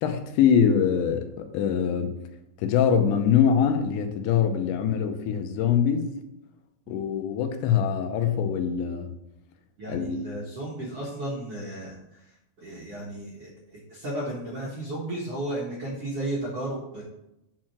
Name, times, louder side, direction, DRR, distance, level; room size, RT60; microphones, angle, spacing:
voice 1, 0.0-2.2 2.6-6.2 6.9-9.1 9.9-10.2, left 8 dB, 85° left, 3.0 m, -23 dB
voice 2, 9.8-17.0, right 1 dB, 50° right, 1.8 m, -34 dB
8.8 x 4.5 x 6.1 m
omnidirectional pair, 5.0 m